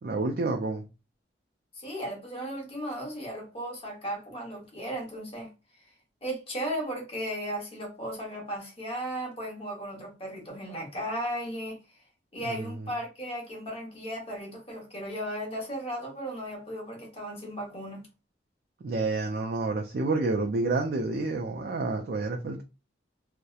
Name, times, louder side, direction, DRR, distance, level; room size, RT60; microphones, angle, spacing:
voice 1, 0.0-0.8 12.4-12.9 18.8-22.6, right 3 dB, 55° right, 0.3 m, -29 dB
voice 2, 1.7-5.5 6.2-11.8 12.3-18.0, equal, 30° left, 0.9 m, -35 dB
2.8 x 2.0 x 2.3 m
head